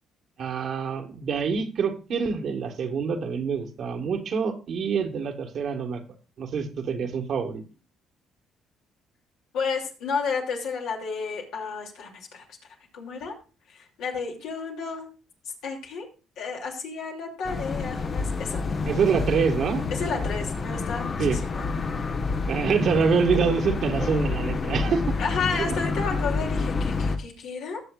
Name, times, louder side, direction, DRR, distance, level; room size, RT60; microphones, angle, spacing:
voice 1, 0.4-6.0 6.4-7.6 18.9-19.9 21.2-21.4 22.5-25.2 25.6-25.7, right 6 dB, 60° right, 4 dB, 1.8 m, -26 dB
voice 2, 9.5-12.4 12.9-13.4 13.7-15.1 15.6-16.1 16.4-18.6 19.9-21.7 23.0-23.8 25.2-27.8, left 5 dB, 75° left, -1 dB, 2.9 m, -32 dB
sound 1, 17.5-27.2, left 4 dB, 45° left, 1.2 m, -28 dB
18.5 x 7.0 x 2.5 m, 0.34 s
supercardioid pair, 65°, 0 cm